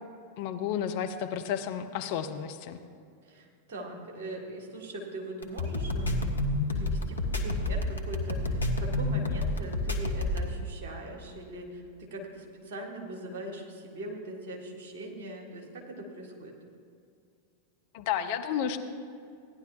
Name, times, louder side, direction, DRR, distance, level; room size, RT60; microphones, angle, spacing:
voice 1, 0.4-2.8 17.9-18.8, left 9 dB, 50° left, 7 dB, 0.6 m, -32 dB
voice 2, 3.2-6.2 6.7-16.5, right 1 dB, 55° right, 0 dB, 1.9 m, -41 dB
sound 1, 5.4-10.5, left 2 dB, 80° left, 0.9 m, -29 dB
16.5 x 10.5 x 2.7 m, 2.4 s
figure-of-eight pair, 90°, 0 cm